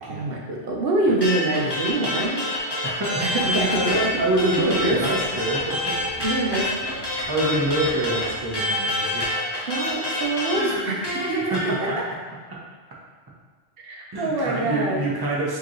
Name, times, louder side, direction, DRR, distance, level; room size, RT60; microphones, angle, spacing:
voice 1, 0.0-2.4 3.2-3.7 4.4-5.0 6.2-7.0 9.7-12.0 13.8-15.0, right 2 dB, 55° right, -1 dB, 0.8 m, -25 dB
sound 1, 1.2-4.1 4.4-11.7, left 1 dB, 20° left, 0.9 m, -27 dB
voice 2, 2.8-5.9 7.3-9.4 11.5-12.1 12.5-12.6 14.1-15.6, right 1 dB, 25° right, -4 dB, 0.6 m, -26 dB
sound 2, 3.3-8.7, equal, 55° left, 0.8 m, -43 dB
sound 3, 4.9-5.2 5.9-6.3 6.8-7.2 7.6-7.7 8.0-8.1 8.6-8.7 9.1-9.2 9.8-10.5 10.8-10.9, equal, ahead, 1.3 m, -46 dB
4.8 x 2.9 x 3.0 m, 1.4 s
omnidirectional pair, 1.3 m